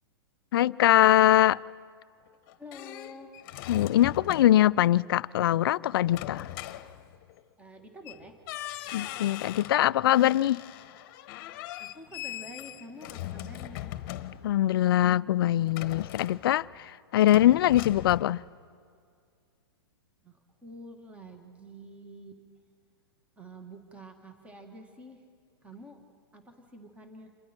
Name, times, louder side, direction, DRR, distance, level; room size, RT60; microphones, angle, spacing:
voice 1, 0.5-1.6 3.7-6.5 8.9-10.6 14.4-18.4, left 13 dB, 65° left, 0.4 m, -22 dB
sound 1, 2.3-4.8 6.1-7.4 8.0-8.2 8.5-9.8 10.1-14.7 15.7-16.8 17.2-18.2, left 14 dB, 45° left, 1.0 m, -40 dB
voice 2, 2.6-3.3 3.9-4.0 7.6-8.4 11.8-14.0 14.2-14.3 20.2-22.5 23.4-25.2 25.6-26.0 26.3-27.3, equal, 10° right, 1.7 m, -48 dB
27.5 x 23.5 x 4.4 m
hypercardioid pair, 120°, 13 cm